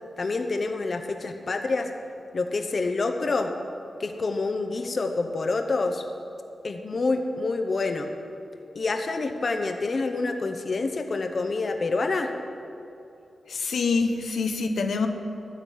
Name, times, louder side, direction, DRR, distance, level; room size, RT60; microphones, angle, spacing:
voice 1, 0.2-1.9 2.3-3.5 4.0-6.0 6.6-8.1 8.7-12.3, left 3 dB, 45° left, 6 dB, 0.9 m, -27 dB
voice 2, 13.5-15.1, left 4 dB, 80° left, 5 dB, 1.0 m, -25 dB
11.0 x 9.7 x 7.4 m, 2.8 s
wide cardioid pair, 115°, 0 cm